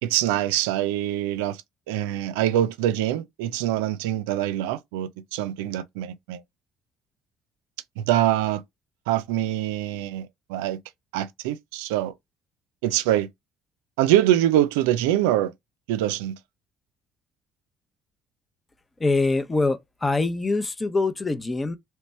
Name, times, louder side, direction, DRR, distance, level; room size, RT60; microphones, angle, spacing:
voice 1, 0.0-1.6 1.9-6.4 8.0-8.6 9.1-10.8 11.1-12.1 12.8-13.3 14.0-15.5 15.9-16.4, right 13 dB, 80° right, 0.4 m, -24 dB
voice 2, 19.0-21.8, left 3 dB, 25° left, 0.8 m, -24 dB
3.2 x 3.2 x 4.2 m
hypercardioid pair, 60°, 0 cm